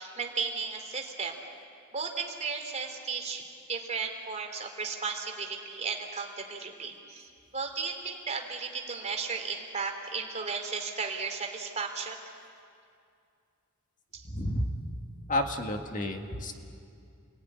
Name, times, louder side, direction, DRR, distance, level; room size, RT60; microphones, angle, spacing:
voice 1, 0.0-1.3 1.9-3.4 3.7-12.2 14.1-14.2, right 5 dB, 35° right, 3 dB, 3.1 m, -35 dB
voice 2, 14.3-14.7 15.3-16.5, left 1 dB, 40° left, 4 dB, 1.8 m, -30 dB
28.5 x 18.0 x 9.7 m, 2.4 s
head